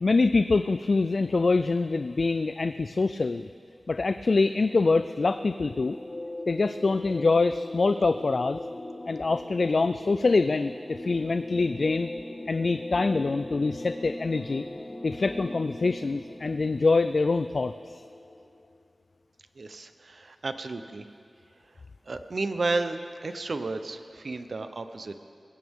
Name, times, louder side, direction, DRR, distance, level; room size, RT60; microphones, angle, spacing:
voice 1, 0.0-3.5 3.9-6.0 6.5-8.6 9.1-12.1 12.5-14.7 15.0-18.0, left 3 dB, 60° left, 10 dB, 0.3 m, -25 dB
sound 1, 4.5-18.8, left 2 dB, 35° left, 0.7 m, -41 dB
sound 2, 8.1-16.8, equal, 5° right, 5.2 m, -44 dB
voice 2, 19.6-21.0 22.1-25.1, right 3 dB, 65° right, 9 dB, 0.8 m, -32 dB
21.0 x 16.0 x 3.7 m, 2.3 s
wide cardioid pair, 80°, 0 cm